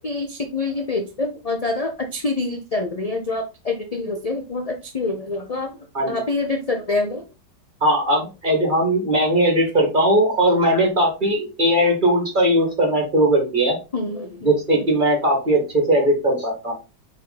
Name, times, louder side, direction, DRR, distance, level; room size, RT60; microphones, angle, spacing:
voice 1, 0.0-5.7 6.1-7.2 13.9-14.9, left 3 dB, 40° left, 4 dB, 0.5 m, -26 dB
voice 2, 7.8-13.8 14.4-16.8, right 1 dB, 30° right, 0 dB, 2.3 m, -19 dB
6.3 x 4.4 x 4.2 m, 0.29 s
omnidirectional pair, 1.8 m